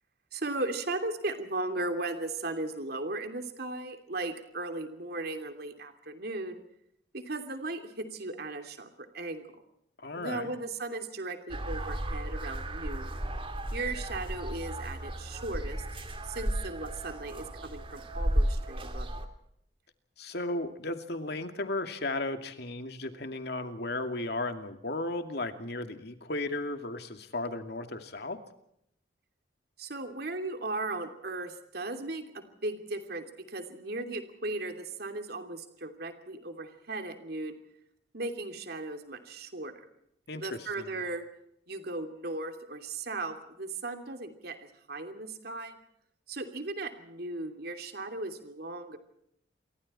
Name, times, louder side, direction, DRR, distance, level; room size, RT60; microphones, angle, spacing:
voice 1, 0.3-6.6 7.1-9.6 10.2-13.2 13.7-15.8 16.2-19.1 29.8-37.6 38.1-39.9 40.3-41.3 41.7-45.7 46.3-49.0, right 2 dB, 60° right, 6 dB, 2.9 m, -37 dB
voice 2, 10.0-10.5 20.2-28.4 40.3-40.9, left 2 dB, 65° left, 7 dB, 2.5 m, -35 dB
sound 1, 11.5-19.3, right 1 dB, 30° right, 2.6 m, -34 dB
28.5 x 23.5 x 4.4 m, 0.74 s
head